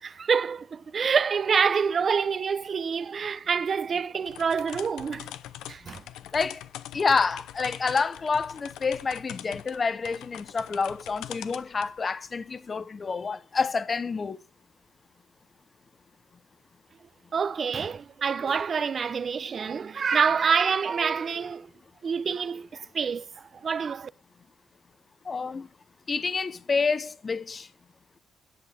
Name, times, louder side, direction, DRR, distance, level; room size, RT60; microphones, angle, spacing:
voice 1, 0.0-5.3 5.7-6.0 17.3-21.7 22.0-24.1, right 6 dB, 45° right, 0.6 m, -27 dB
sound 1, 4.3-12.0, left 12 dB, 90° left, 0.6 m, -42 dB
voice 2, 6.3-6.6 6.9-14.4 25.2-25.7 26.1-27.7, left 4 dB, 35° left, 0.7 m, -28 dB
11.0 x 6.9 x 6.3 m
cardioid pair, 90°, 0 cm